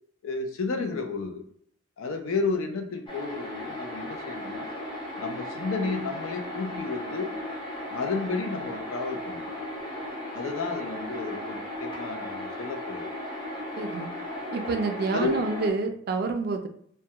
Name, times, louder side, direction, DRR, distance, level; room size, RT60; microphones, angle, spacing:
voice 1, 0.2-1.4 2.0-4.7 5.2-7.3 7.9-9.5 10.3-13.3 15.1-15.4, left 4 dB, 90° left, 5 dB, 0.4 m, -32 dB
sound 1, 3.1-15.7, left 1 dB, 25° left, 0.5 m, -36 dB
voice 2, 13.8-14.1 14.5-16.7, right 4 dB, 50° right, 6 dB, 0.3 m, -28 dB
2.2 x 2.1 x 2.8 m, 0.65 s
head